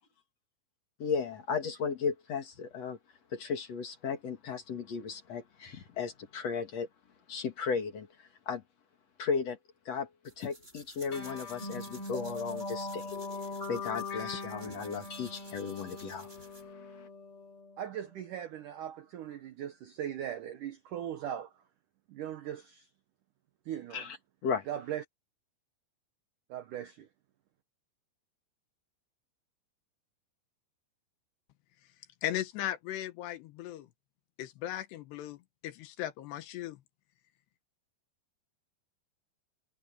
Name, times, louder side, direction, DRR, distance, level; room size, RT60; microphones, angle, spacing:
voice 1, 1.0-3.0 3.3-6.9 7.3-8.6 9.2-9.6 9.9-13.1 13.7-17.1 23.9-24.2 24.4-24.7, left 5 dB, 45° left, 2.6 m, -35 dB
sound 1, 10.2-16.7, right 1 dB, 10° right, 7.6 m, -55 dB
sound 2, 11.1-18.0, left 3 dB, 30° left, 7.9 m, -41 dB
voice 2, 17.8-21.5 22.1-22.9 23.7-24.0 24.7-25.0 26.5-27.1, right 10 dB, 75° right, 1.9 m, -39 dB
voice 3, 32.2-33.9 34.4-36.8, left 13 dB, 75° left, 3.1 m, -37 dB
omnidirectional pair, 5.0 m